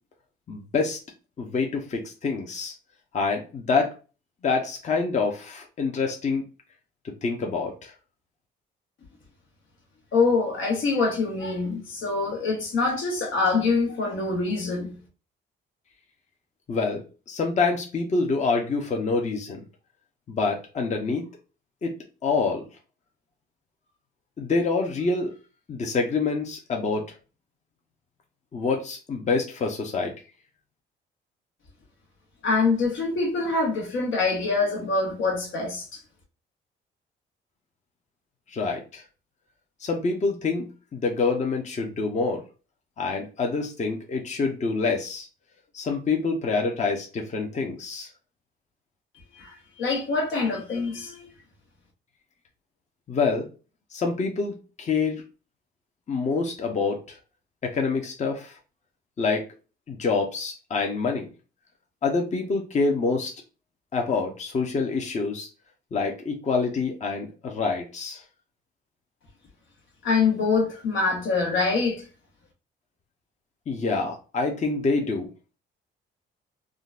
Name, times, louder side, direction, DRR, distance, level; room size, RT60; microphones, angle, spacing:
voice 1, 0.5-1.0 1.4-2.7 3.1-3.9 4.4-6.4 7.0-7.9 16.7-19.6 20.3-21.3 21.8-21.9 22.2-22.6 24.4-25.3 25.7-27.2 28.5-30.1 38.5-39.0 39.8-40.6 40.9-42.4 43.0-45.3 45.7-48.1 53.1-53.5 53.9-55.2 56.1-57.2 57.6-58.6 59.2-59.5 59.9-61.3 62.0-63.3 63.9-65.5 65.9-68.2 73.7-75.3, left 4 dB, 35° left, 0.7 m, -26 dB
voice 2, 10.1-15.0 32.4-35.9 49.4-51.3 70.0-72.0, left 4 dB, 75° left, 1.2 m, -25 dB
3.7 x 2.2 x 2.4 m
cardioid pair, 90°, 20 cm